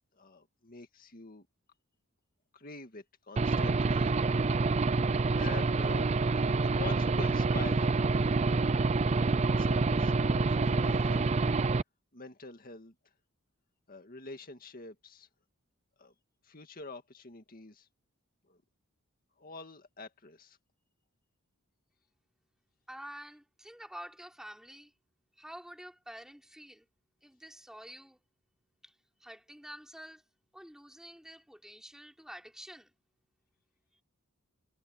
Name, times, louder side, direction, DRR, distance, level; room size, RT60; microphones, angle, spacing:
voice 1, 0.2-1.5 2.5-4.1 4.4-4.8 5.4-6.1 6.5-7.9 9.4-11.4 12.1-12.9 13.9-15.3 16.0-16.1 16.4-17.9 18.5-18.6 19.4-20.6, left 3 dB, 40° left, 2.0 m, -46 dB
Aircraft / Engine, 3.4-11.8, right 3 dB, 30° right, 0.4 m, -27 dB
voice 2, 22.9-24.9 25.4-26.9 27.2-28.2 28.8-30.2 30.5-32.9, equal, 5° right, 4.0 m, -48 dB
head